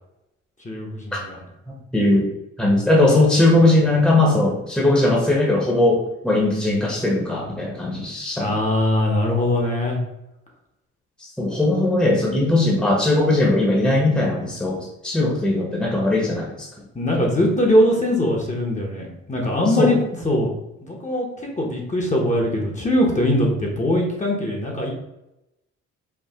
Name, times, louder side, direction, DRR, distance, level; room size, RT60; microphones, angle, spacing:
voice 1, 0.6-1.4 8.4-10.0 16.9-20.5 20.8-24.9, left 1 dB, 25° left, -1 dB, 1.1 m, -21 dB
voice 2, 1.7-2.3 2.6-8.6 11.2-16.7 19.8-19.9, left 2 dB, 5° left, -2 dB, 1.0 m, -19 dB
4.7 x 2.4 x 3.6 m, 0.90 s
cardioid pair, 90°, 30 cm